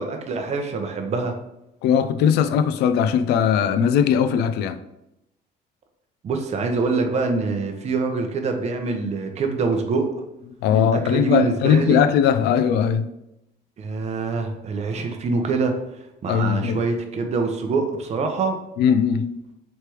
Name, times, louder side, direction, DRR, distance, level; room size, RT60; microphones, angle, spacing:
voice 1, 0.0-1.3 6.2-10.1 10.7-12.0 13.8-15.7 16.2-18.6, right 4 dB, 40° right, 4 dB, 0.7 m, -24 dB
voice 2, 1.8-4.8 10.6-13.1 16.3-16.8 18.8-19.4, left 8 dB, 80° left, 12 dB, 0.4 m, -19 dB
3.3 x 3.2 x 4.4 m, 0.86 s
cardioid pair, 110°, 17 cm